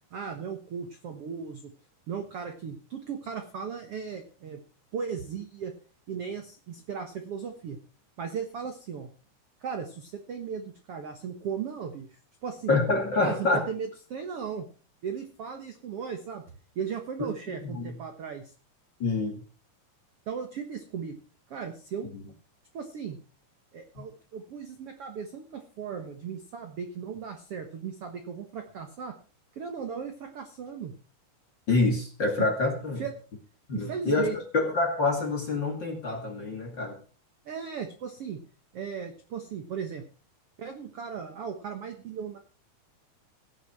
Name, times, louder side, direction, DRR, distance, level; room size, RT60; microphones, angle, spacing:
voice 1, 0.1-1.7 2.1-4.6 4.9-5.7 6.1-7.8 8.2-9.1 9.6-12.8 13.2-14.6 15.0-16.4 16.7-18.5 20.3-21.2 21.5-22.1 22.7-23.2 23.7-29.2 29.5-30.9 33.0-33.1 33.7-34.3 37.4-38.4 38.7-40.0 40.6-42.4, right 6 dB, 60° right, 5 dB, 1.6 m, -36 dB
voice 2, 12.7-13.6 17.2-17.9 19.0-19.4 22.1-22.2 24.0-24.1 31.7-33.0 33.7-37.0, left 3 dB, 35° left, 2 dB, 2.3 m, -27 dB
16.5 x 8.2 x 6.0 m, 0.38 s
omnidirectional pair, 4.5 m